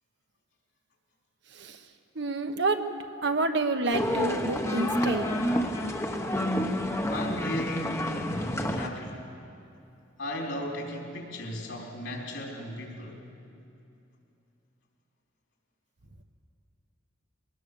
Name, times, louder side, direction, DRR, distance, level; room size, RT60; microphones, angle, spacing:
voice 1, 2.1-2.9 3.2-5.3, right 2 dB, 60° right, 6 dB, 1.2 m, -28 dB
sound 1, 3.9-8.9, equal, 15° left, 1.0 m, -29 dB
voice 2, 7.0-9.3 10.2-13.2, left 1 dB, 65° left, 0 dB, 3.9 m, -36 dB
22.5 x 19.0 x 7.0 m, 2.7 s
head